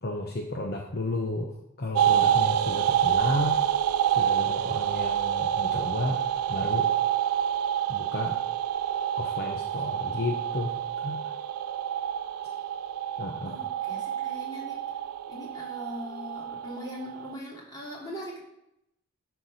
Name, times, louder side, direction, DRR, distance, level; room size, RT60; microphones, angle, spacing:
voice 1, 0.0-3.7 4.1-6.2 6.5-6.9 7.9-8.4 9.2-10.8 11.0-11.3 13.2-13.6, left 2 dB, 45° left, 1 dB, 0.9 m, -32 dB
sound 1, 1.9-17.3, right 10 dB, 80° right, 0.4 m, -28 dB
voice 2, 13.4-15.0 15.3-18.4, equal, 20° left, -5 dB, 2.9 m, -40 dB
10.5 x 4.6 x 5.5 m, 0.83 s
head